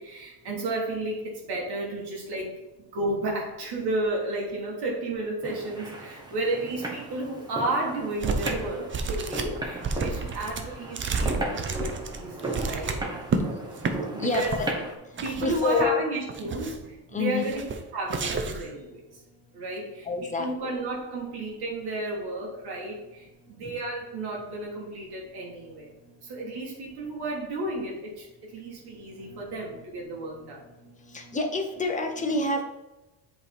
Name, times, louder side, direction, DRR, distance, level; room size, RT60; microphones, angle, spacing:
voice 1, 0.0-2.5 2.9-13.0 14.1-14.6 15.2-17.7 17.9-19.2 19.5-25.9 26.2-30.6, right 2 dB, 50° right, -2 dB, 1.6 m, -32 dB
sound 1, 5.4-15.0, right 2 dB, 10° right, 1.0 m, -36 dB
sound 2, 8.2-8.7 8.9-13.4 13.8-13.9 14.3-14.7 15.2-15.9 16.3-16.9 17.4-17.8 18.1-18.7, right 4 dB, 25° right, 0.6 m, -31 dB
voice 2, 14.2-14.7 15.4-16.0 17.1-17.5 20.0-20.7 23.6-23.7 29.3-29.4 31.1-32.6, left 3 dB, 15° left, 3 dB, 0.9 m, -27 dB
7.7 x 3.5 x 4.3 m, 1.0 s
cardioid pair, 125°, 49 cm